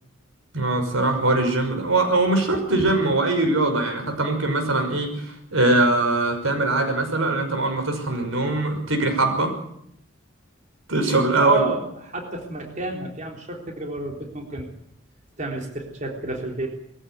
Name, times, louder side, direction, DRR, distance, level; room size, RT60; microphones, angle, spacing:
voice 1, 0.5-9.6 10.9-11.6, right 2 dB, 90° right, 6 dB, 6.0 m, -22 dB
voice 2, 11.4-14.7 15.4-16.7, right 2 dB, 35° right, 1 dB, 3.7 m, -31 dB
22.0 x 15.0 x 9.5 m, 0.74 s
head